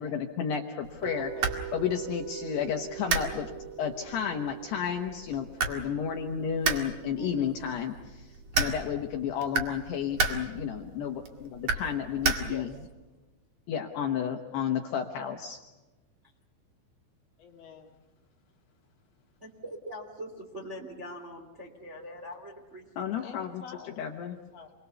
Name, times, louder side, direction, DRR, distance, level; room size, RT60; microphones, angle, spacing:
voice 1, 0.0-1.3 1.7-3.5 3.8-12.7 13.7-15.6 23.0-23.6 24.0-24.4, left 8 dB, 70° left, 3 dB, 2.7 m, -32 dB
sound 1, 0.8-12.9, right 4 dB, 50° right, 2.0 m, -34 dB
sound 2, 1.0-7.1, right 10 dB, 70° right, 3.5 m, -43 dB
voice 2, 1.2-1.6 17.4-18.0 23.2-24.7, left 6 dB, 50° left, -1 dB, 3.4 m, -48 dB
voice 3, 7.2-7.5 12.4-12.8 19.4-23.3, equal, 20° right, 0 dB, 1.8 m, -42 dB
28.5 x 22.5 x 6.9 m, 1.2 s
omnidirectional pair, 5.9 m